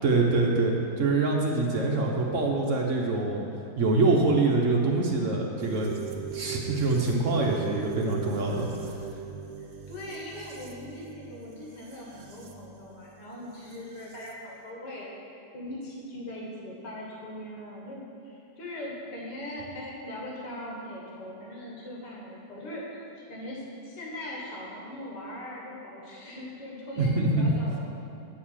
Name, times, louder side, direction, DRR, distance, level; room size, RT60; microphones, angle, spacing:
voice 1, 0.0-3.5 3.8-5.9 6.3-8.7 27.0-27.5, right 3 dB, 55° right, 0 dB, 1.1 m, -25 dB
sound 1, 5.6-14.3, right 7 dB, 90° right, 0.4 m, -40 dB
voice 2, 9.9-27.8, left 1 dB, 75° left, -3 dB, 2.1 m, -40 dB
8.9 x 4.8 x 7.2 m, 2.6 s
omnidirectional pair, 1.9 m